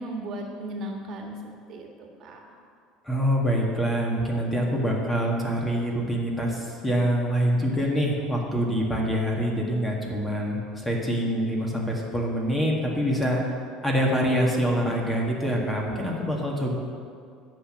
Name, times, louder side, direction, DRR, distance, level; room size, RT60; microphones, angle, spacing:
voice 1, 0.0-2.4, right 1 dB, 45° right, 1 dB, 1.7 m, -36 dB
voice 2, 3.0-13.4 13.8-16.8, equal, 10° left, -2 dB, 1.7 m, -25 dB
9.9 x 6.1 x 8.7 m, 2.3 s
cardioid pair, 140°, 0 cm